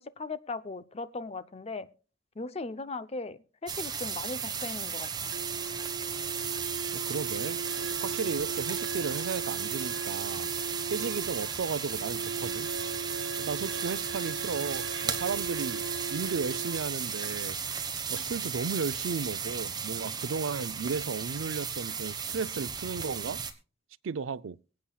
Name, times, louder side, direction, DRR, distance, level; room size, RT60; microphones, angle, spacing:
voice 1, 0.0-1.9 2.4-5.3, left 3 dB, 30° left, 0.6 m, -38 dB
sound 1, 3.7-23.5, right 6 dB, 20° right, 1.2 m, -35 dB
sound 2, 5.3-16.8, right 5 dB, 70° right, 0.8 m, -39 dB
voice 2, 6.9-10.5 10.9-12.7 13.4-15.8 16.1-17.6 18.1-23.4 24.0-24.6, right 5 dB, 90° right, 0.5 m, -34 dB
23.5 x 8.6 x 2.3 m
head